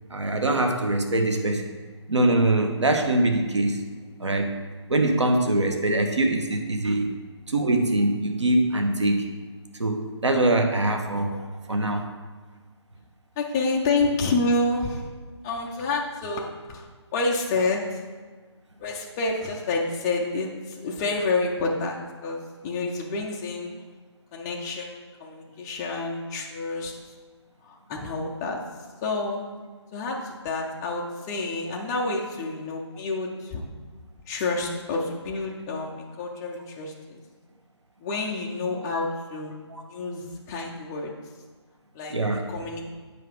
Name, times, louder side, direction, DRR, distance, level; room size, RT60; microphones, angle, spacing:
voice 1, 0.1-1.8 2.1-3.8 4.2-4.5 4.9-7.1 7.5-9.3 9.8-12.1 38.9-39.0 39.7-39.8 42.1-42.5, right 2 dB, 75° right, 4 dB, 1.1 m, -23 dB
voice 2, 13.4-15.0 15.4-16.8 17.1-18.0 18.8-23.7 24.3-24.9 25.2-26.9 27.6-28.6 29.0-29.5 29.9-30.2 30.4-33.6 34.3-37.2 38.0-39.6 39.9-41.1 41.9-42.1 42.5-42.8, left 3 dB, 10° left, -2 dB, 0.3 m, -28 dB
7.7 x 4.8 x 4.8 m, 1.4 s
figure-of-eight pair, 145°, 15 cm